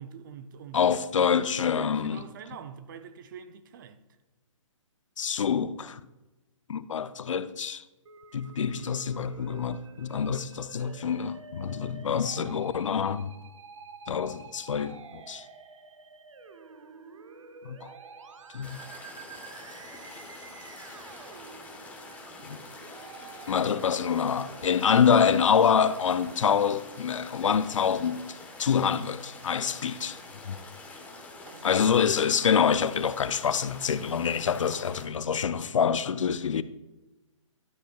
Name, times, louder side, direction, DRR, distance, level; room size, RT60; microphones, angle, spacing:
voice 1, 0.0-4.0 31.4-32.0, right 7 dB, 40° right, 0.6 m, -45 dB
voice 2, 0.7-2.3 5.2-6.0 6.7-7.8 8.3-13.3 14.1-15.4 17.6-17.9 18.5-18.8 22.5-22.6 23.5-28.3 28.6-30.2 30.5-30.6 31.6-36.6, left 7 dB, 70° left, 0.5 m, -26 dB
Musical instrument, 8.1-26.0, right 5 dB, 70° right, 0.8 m, -49 dB
sound 1, 18.6-35.1, left 2 dB, 10° left, 1.2 m, -46 dB
12.0 x 9.8 x 2.3 m
figure-of-eight pair, 135°, 17 cm